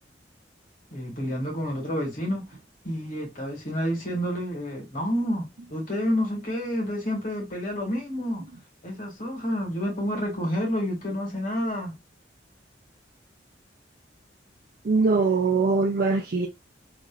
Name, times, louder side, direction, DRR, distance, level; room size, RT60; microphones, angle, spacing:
voice 1, 0.9-2.4 2.8-8.4 8.8-11.9, equal, 45° left, 1.6 m, -29 dB
voice 2, 14.8-16.5, right 4 dB, 55° right, 0.4 m, -22 dB
3.0 x 2.5 x 2.4 m
head